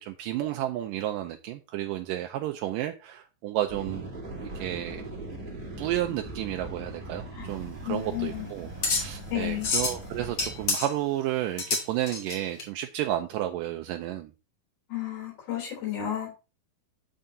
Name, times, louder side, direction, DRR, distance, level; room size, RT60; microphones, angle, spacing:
voice 1, 0.0-4.1 4.6-5.0 5.8-14.3, right 13 dB, 80° right, 5 dB, 2.1 m, -32 dB
sound 1, 3.7-10.7, right 2 dB, 30° right, 1.0 m, -40 dB
sound 2, 7.5-12.6, left 4 dB, 45° left, 2.5 m, -31 dB
voice 2, 7.8-8.5 9.3-9.7 14.9-16.3, left 12 dB, 85° left, 0 dB, 5.1 m, -32 dB
12.5 x 4.7 x 2.7 m, 0.30 s
omnidirectional pair, 4.2 m